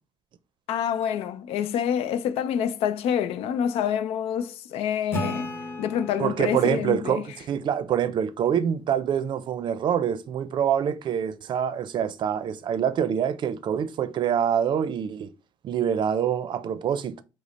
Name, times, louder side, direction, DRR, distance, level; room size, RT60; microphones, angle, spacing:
voice 1, 0.7-5.5 5.8-7.2, left 9 dB, 85° left, 0.5 m, -27 dB
Acoustic guitar / Strum, 5.1-8.6, left 1 dB, 25° left, 1.2 m, -36 dB
voice 2, 6.2-15.3 15.6-17.2, right 9 dB, 50° right, 0.5 m, -25 dB
5.0 x 2.0 x 4.1 m
cardioid pair, 135°, 10 cm